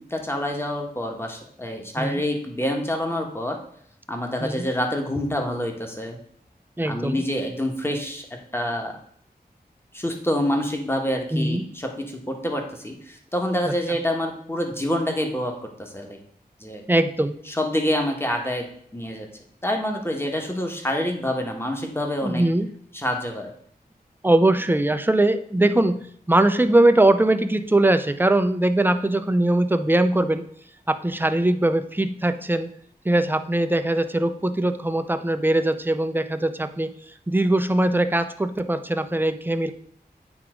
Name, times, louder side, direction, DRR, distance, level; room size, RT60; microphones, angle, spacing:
voice 1, 0.0-3.6 4.1-6.2 6.8-8.3 8.5-8.9 9.9-16.2 16.6-16.8 17.5-18.7 18.9-19.3 19.6-22.4 22.9-23.5, left 1 dB, 15° left, 2 dB, 1.4 m, -27 dB
voice 2, 6.8-7.2 11.3-11.7 13.7-13.8 16.9-17.4 22.2-22.7 24.2-30.5 30.9-32.7 33.0-39.7, right 1 dB, 10° right, 10 dB, 0.5 m, -21 dB
8.6 x 3.6 x 5.0 m, 0.63 s
wide cardioid pair, 65°, 17 cm